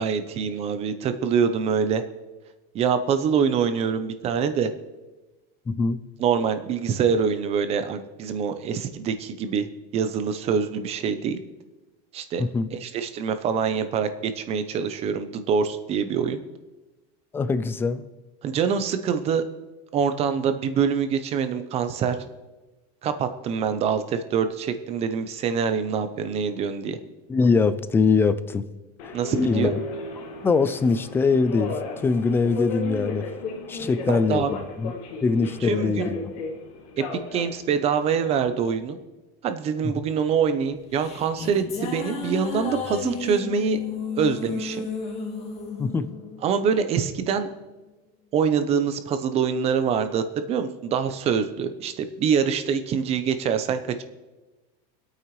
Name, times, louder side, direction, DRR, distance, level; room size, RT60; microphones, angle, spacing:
voice 1, 0.0-2.0 2.7-4.7 6.2-9.7 9.9-11.4 12.1-12.4 12.7-16.4 18.4-19.4 19.9-22.2 23.0-27.0 29.1-29.7 33.8-34.5 35.6-36.1 37.0-39.0 39.4-43.8 44.2-44.9 46.4-47.5 48.3-54.0, right 6 dB, 30° right, 9 dB, 0.8 m, -25 dB
voice 2, 5.7-6.0 12.4-12.7 17.3-18.1 27.3-28.7 29.3-29.7 30.4-33.3 33.7-34.9 35.2-36.3 39.8-39.9 45.8-46.1, left 4 dB, 10° left, 13 dB, 0.4 m, -23 dB
Subway metro underground, 29.0-38.7, left 3 dB, 75° left, 2.0 m, -35 dB
sound 1, 40.7-47.3, left 5 dB, 30° left, 2.0 m, -33 dB
25.0 x 8.9 x 3.2 m, 1.2 s
cardioid pair, 165°, 20 cm